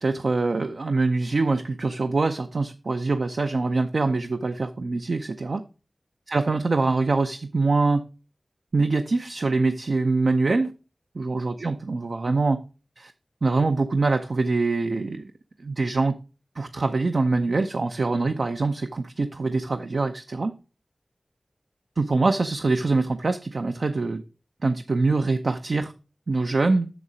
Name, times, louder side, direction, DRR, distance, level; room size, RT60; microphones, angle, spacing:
voice 1, 0.0-5.6 6.3-8.0 8.7-10.7 11.1-12.6 13.0-13.1 13.4-15.2 15.6-16.2 16.6-20.5 22.0-24.2 24.6-25.9 26.3-26.9, right 3 dB, 75° right, 0.5 m, -24 dB
6.9 x 6.4 x 5.0 m
wide cardioid pair, 45°, 0 cm